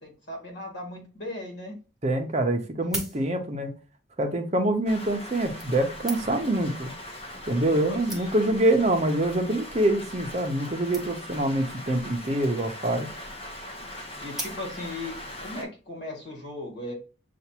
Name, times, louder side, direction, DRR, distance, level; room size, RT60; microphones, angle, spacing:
voice 1, 0.0-1.7 7.9-8.4 14.2-16.9, left 1 dB, 55° left, 2.0 m, -37 dB
voice 2, 2.0-3.7 4.2-6.9 7.5-13.1, right 1 dB, 35° right, 0.7 m, -25 dB
sound 1, 2.6-3.7 4.6-4.8 5.6-6.6 7.4-7.5 7.7-7.8 8.1-8.6 9.3-9.5 9.8-9.9 10.1-10.2 10.4-10.6 10.9-11.4 12.4-12.9 14.3-15.0 15.6-15.7, right 2 dB, ahead, 0.8 m, -39 dB
Rain, 4.9-15.6, left 1 dB, 30° left, 1.1 m, -40 dB
6.8 x 2.5 x 2.9 m
head